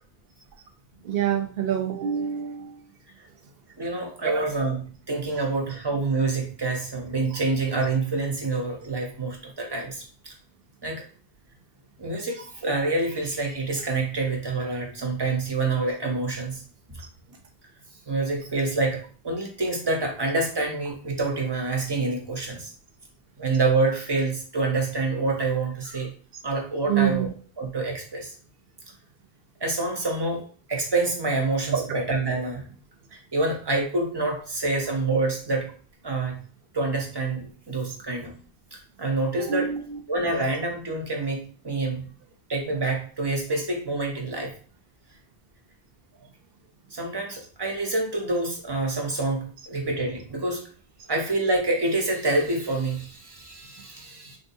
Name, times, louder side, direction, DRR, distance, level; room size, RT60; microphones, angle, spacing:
voice 1, 1.0-2.8 4.2-4.5 26.9-27.3 31.7-31.8 39.4-40.0, right 9 dB, 70° right, 5 dB, 0.8 m, -26 dB
voice 2, 3.8-10.3 10.8-11.0 12.0-16.6 18.1-22.7 23.4-26.1 26.4-28.3 29.6-30.4 30.7-32.6 33.1-35.7 36.0-36.4 36.7-38.3 38.7-39.7 40.1-42.0 42.5-44.5 46.9-50.6 51.1-54.4, right 3 dB, 30° right, 1 dB, 0.6 m, -27 dB
3.5 x 2.5 x 2.6 m, 0.42 s
omnidirectional pair, 1.1 m